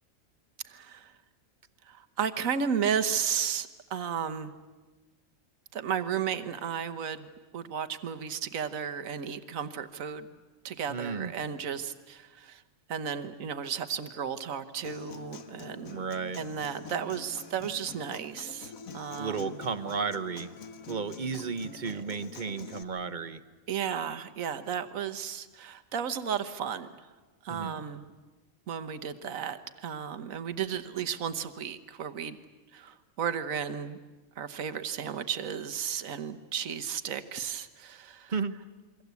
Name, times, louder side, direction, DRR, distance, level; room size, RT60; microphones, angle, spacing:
voice 1, 0.6-1.1 1.9-4.5 5.7-7.3 7.5-10.4 10.6-12.6 12.9-16.1 16.3-19.6 21.9-22.0 23.7-26.9 27.4-28.1 28.7-32.4 32.7-34.0 34.4-38.3, right 7 dB, 75° right, 9 dB, 1.5 m, -34 dB
voice 2, 10.9-11.3 15.9-16.4 19.2-20.5 20.9-23.4 27.5-27.8 38.3-38.6, right 5 dB, 40° right, 10 dB, 1.1 m, -33 dB
Human voice / Acoustic guitar, 14.8-22.8, left 5 dB, 85° left, 1.6 m, -46 dB
28.5 x 23.0 x 8.3 m, 1.2 s
omnidirectional pair, 1.4 m